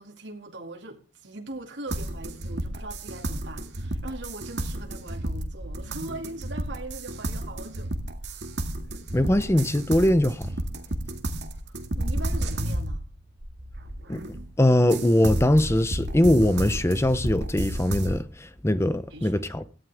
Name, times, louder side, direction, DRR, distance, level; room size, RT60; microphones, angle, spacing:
voice 1, 0.0-7.9 8.2-8.5 11.7-13.1 19.1-19.5, right 2 dB, 90° right, 2.5 m, -41 dB
sound 1, 1.9-14.5 14.9-18.2, right 1 dB, 70° right, 2.1 m, -32 dB
voice 2, 9.1-10.5 14.1-14.2 14.6-19.6, left 1 dB, 15° left, 0.8 m, -21 dB
17.5 x 15.0 x 3.6 m
head